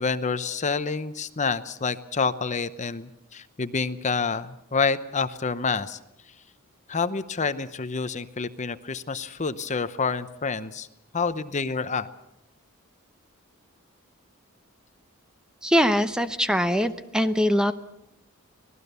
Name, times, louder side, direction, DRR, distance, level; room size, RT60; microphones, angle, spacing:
voice 1, 0.0-6.0 6.9-10.9 11.1-12.1, left 4 dB, 35° left, 13 dB, 0.8 m, -28 dB
voice 2, 15.6-17.7, equal, 5° right, 10 dB, 0.8 m, -22 dB
25.0 x 18.5 x 6.8 m, 0.82 s
head